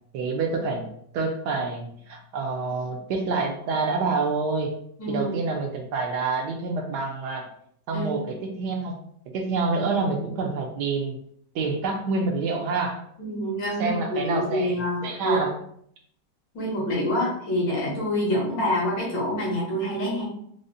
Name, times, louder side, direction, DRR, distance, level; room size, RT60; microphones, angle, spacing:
voice 1, 0.1-4.7 5.1-7.5 7.9-9.0 9.3-11.2 11.5-13.0 13.8-15.5 17.1-17.2, right 4 dB, 75° right, 2 dB, 1.1 m, -27 dB
voice 2, 5.0-5.4 7.9-8.1 13.2-15.4 16.5-20.2, equal, 80° left, -5 dB, 2.1 m, -26 dB
4.9 x 2.0 x 2.6 m, 0.66 s
omnidirectional pair, 1.9 m